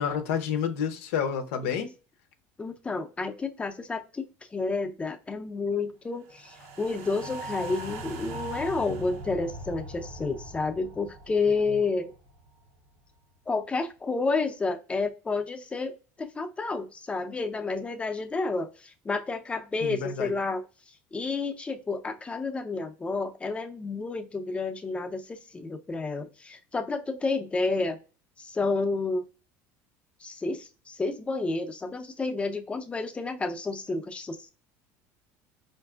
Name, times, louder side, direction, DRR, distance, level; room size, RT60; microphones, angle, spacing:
voice 1, 0.0-1.9 11.7-11.8 19.8-20.3, left 7 dB, 85° left, 7 dB, 0.6 m, -29 dB
voice 2, 2.6-4.3 4.5-12.1 13.5-20.6 21.1-28.0 28.4-29.2 30.2-34.5, left 3 dB, 15° left, 6 dB, 0.5 m, -30 dB
sound 1, 6.4-12.8 13.1-13.2, right 1 dB, 80° right, 0.7 m, -40 dB
4.6 x 2.5 x 2.3 m, 0.34 s
supercardioid pair, 120°, 7 cm